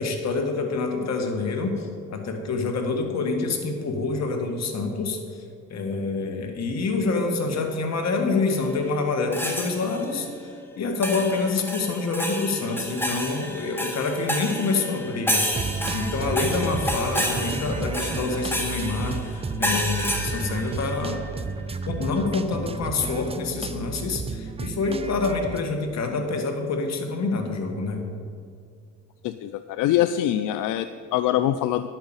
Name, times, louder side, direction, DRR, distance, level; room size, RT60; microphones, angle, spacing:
voice 1, 0.0-15.5 15.9-21.2 21.8-28.0, left 3 dB, 60° left, 4 dB, 1.7 m, -27 dB
sound 1, 9.3-10.1 11.0-21.3, equal, 5° left, 1.7 m, -30 dB
sound 2, 15.5-25.6, right 4 dB, 20° right, 0.5 m, -32 dB
voice 2, 29.2-31.9, left 12 dB, 85° left, 11 dB, 0.5 m, -24 dB
10.5 x 5.8 x 8.7 m, 2.3 s
cardioid pair, 90°, 30 cm